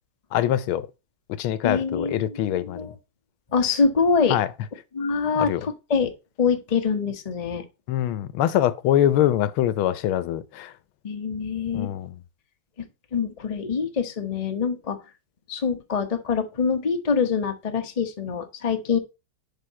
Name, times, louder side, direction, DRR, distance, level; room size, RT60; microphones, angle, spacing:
voice 1, 0.3-0.9 1.4-2.9 4.3-4.5 5.4-5.6 7.9-10.7 11.7-12.1, left 12 dB, 75° left, 1.4 m, -23 dB
voice 2, 1.6-3.0 3.5-4.4 4.9-7.7 11.0-11.9 12.8-15.0 15.5-19.0, left 5 dB, 55° left, 0.4 m, -25 dB
10.5 x 3.7 x 4.2 m
omnidirectional pair, 2.4 m